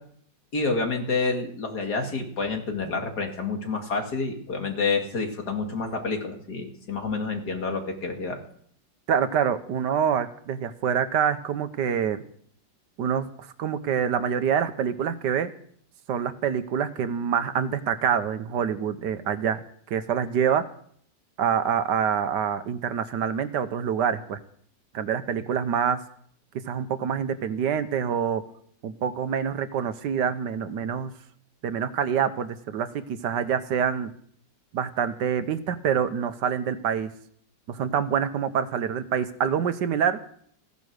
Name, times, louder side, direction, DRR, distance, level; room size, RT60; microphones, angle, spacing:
voice 1, 0.5-8.4, left 4 dB, 60° left, 3 dB, 2.7 m, -28 dB
voice 2, 9.1-12.2 13.0-15.5 16.1-19.6 19.9-20.6 21.4-24.4 24.9-26.0 26.7-28.4 28.8-31.1 31.6-34.1 34.7-37.1 37.7-40.2, right 8 dB, 70° right, 11 dB, 1.4 m, -26 dB
15.5 x 10.5 x 6.5 m, 0.62 s
omnidirectional pair, 2.0 m